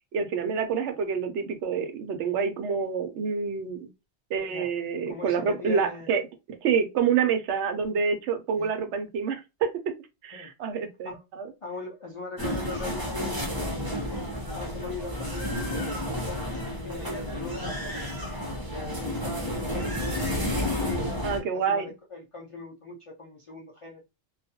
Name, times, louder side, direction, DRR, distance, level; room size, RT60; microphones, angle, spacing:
voice 1, 0.1-3.9 4.3-6.2 6.5-9.7 10.2-11.5 21.2-21.9, right 6 dB, 85° right, 0.9 m, -27 dB
voice 2, 5.1-6.1 8.6-8.7 10.3-10.5 11.0-11.2 11.6-18.0 18.7-24.0, left 2 dB, 55° left, 0.3 m, -41 dB
sound 1, 12.4-21.4, left 1 dB, 25° right, 0.6 m, -31 dB
2.4 x 2.1 x 2.7 m
omnidirectional pair, 1.2 m